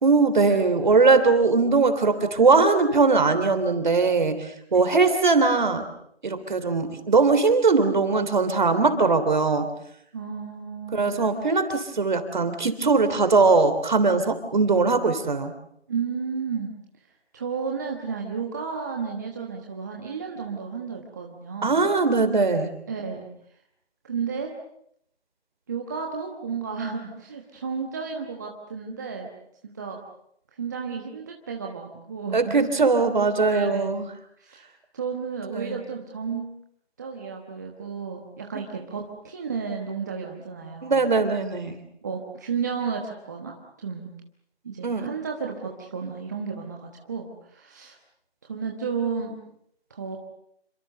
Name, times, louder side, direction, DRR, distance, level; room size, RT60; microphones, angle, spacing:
voice 1, 0.0-5.8 6.2-9.7 10.9-15.5 21.6-22.7 32.3-34.0 35.5-35.8 38.5-38.7 40.8-41.8 44.8-45.1, right 4 dB, 45° right, 9 dB, 3.3 m, -20 dB
voice 2, 10.1-11.1 15.9-16.7 17.3-21.8 22.9-23.3 24.0-24.5 25.7-29.3 29.6-30.0 30.6-32.7 33.4-33.9 34.4-34.7 34.9-36.5 37.0-41.1 42.0-44.1 44.6-48.0 48.4-49.4 49.9-50.2, right 5 dB, 15° right, 1 dB, 1.3 m, -32 dB
28.0 x 25.5 x 6.7 m, 0.72 s
figure-of-eight pair, 170°, 33 cm